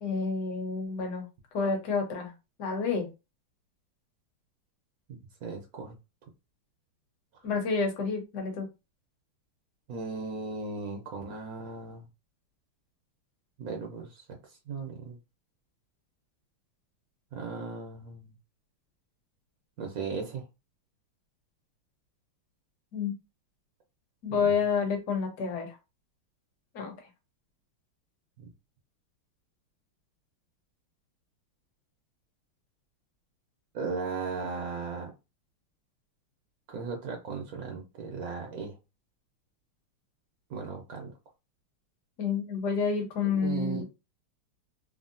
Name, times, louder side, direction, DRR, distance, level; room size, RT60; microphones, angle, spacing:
voice 1, 0.0-1.3 1.5-2.3 2.6-3.1 7.4-8.7 22.9-23.1 24.2-25.8 26.7-26.9 42.2-43.8, left 5 dB, 60° left, 2 dB, 1.2 m, -29 dB
voice 2, 5.1-5.9 9.9-12.1 13.6-15.2 17.3-18.3 19.8-20.4 24.3-24.6 28.4-28.5 33.7-35.1 36.7-38.8 40.5-41.1 43.2-43.8, right 4 dB, 80° right, 1 dB, 0.8 m, -37 dB
3.7 x 2.0 x 2.5 m, 0.26 s
omnidirectional pair, 2.3 m